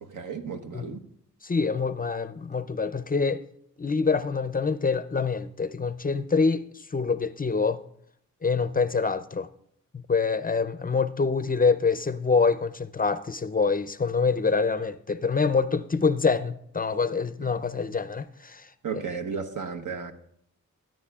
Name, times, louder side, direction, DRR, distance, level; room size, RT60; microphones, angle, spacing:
voice 1, 0.0-1.0 18.8-20.1, right 6 dB, 70° right, 1.0 m, -34 dB
voice 2, 1.4-3.4 3.8-7.8 8.4-9.5 9.9-18.7, left 4 dB, 30° left, 0.5 m, -25 dB
14.5 x 9.2 x 2.3 m
cardioid pair, 50°, 32 cm